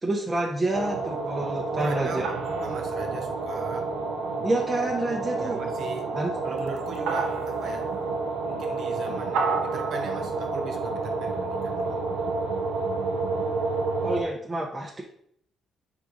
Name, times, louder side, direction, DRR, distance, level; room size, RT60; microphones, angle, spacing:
voice 1, 0.0-2.3 4.4-5.6 6.1-6.3 14.0-15.0, right 2 dB, 20° right, 0.6 m, -28 dB
sound 1, 0.7-14.2, right 3 dB, 90° right, 0.5 m, -29 dB
voice 2, 1.7-4.0 5.4-8.0 8.4-12.3, right 4 dB, 65° right, 0.8 m, -39 dB
4.6 x 3.6 x 2.6 m
cardioid pair, 90°, 0 cm